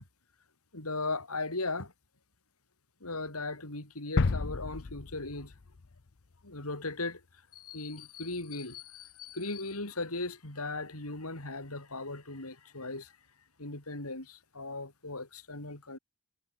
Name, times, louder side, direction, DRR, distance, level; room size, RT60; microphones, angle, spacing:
voice 1, 0.7-1.9 3.0-5.5 6.4-7.2 7.5-13.2 13.6-16.0, left 3 dB, 85° left, 5.3 m, -37 dB
sound 1, 4.2-6.1 6.5-6.6, left 3 dB, 55° left, 0.7 m, -32 dB
head